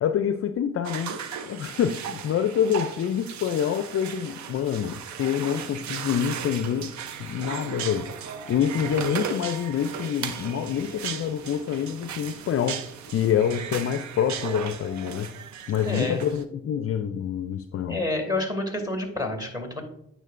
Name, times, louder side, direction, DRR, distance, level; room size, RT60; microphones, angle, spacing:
voice 1, 0.0-6.9 7.2-8.1 8.5-12.8 13.1-15.3 15.7-18.0, left 9 dB, 45° left, 0.5 m, -26 dB
sound 1, 0.8-16.4, right 7 dB, 60° right, 0.7 m, -36 dB
voice 2, 15.8-16.2 17.9-19.8, left 1 dB, 10° right, 2.5 m, -28 dB
9.1 x 6.2 x 2.5 m
supercardioid pair, 65°, 33 cm